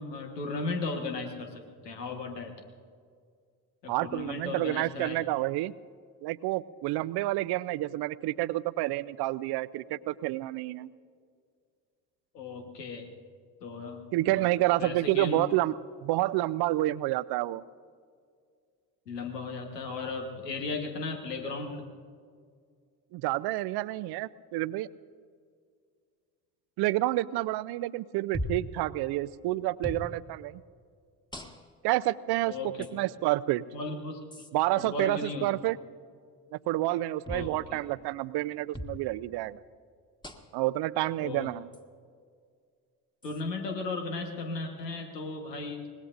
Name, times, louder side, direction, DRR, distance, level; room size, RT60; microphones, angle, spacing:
voice 1, 0.0-2.5 3.8-5.2 12.3-13.1 13.6-14.5 14.8-15.4 19.1-21.9 32.5-32.8 33.7-34.2 34.8-35.5 37.3-37.8 41.2-41.5 43.2-45.9, left 3 dB, 90° left, 3 dB, 1.5 m, -36 dB
voice 2, 3.9-5.7 6.2-10.9 14.1-17.6 23.1-24.9 26.8-30.6 31.8-32.5 32.9-33.6 34.5-35.8 36.5-39.6 40.5-41.7, right 16 dB, 55° right, 18 dB, 0.6 m, -29 dB
sound 1, 28.3-28.7 29.8-30.1 31.3-31.8 32.8-32.9 34.3-34.5 37.2-37.5 38.7-39.0 40.2-40.6 41.7-41.8 43.2-43.4, left 1 dB, 10° left, 1.6 m, -38 dB
25.0 x 20.5 x 2.6 m, 2.1 s
hypercardioid pair, 50°, 47 cm